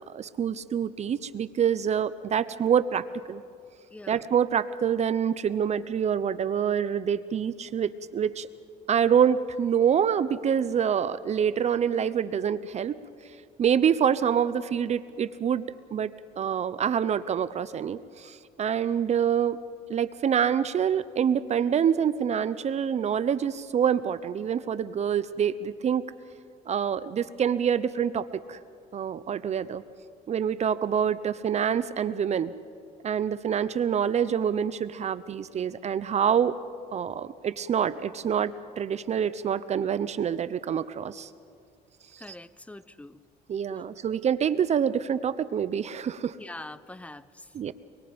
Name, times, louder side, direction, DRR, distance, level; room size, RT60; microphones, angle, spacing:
voice 1, 0.0-3.4 4.1-8.5 8.9-13.0 13.6-15.6 15.9-19.6 19.9-26.0 26.7-28.6 28.9-29.8 30.3-32.5 33.0-36.5 36.9-41.3 42.1-42.2 43.5-46.4 47.5-47.7, right 8 dB, 40° right, 14 dB, 0.6 m, -26 dB
voice 2, 3.9-4.2 42.2-43.2 43.8-43.9 46.4-47.5, left 2 dB, 10° left, 15 dB, 0.6 m, -44 dB
26.0 x 22.0 x 5.2 m, 2.3 s
cardioid pair, 110°, 17 cm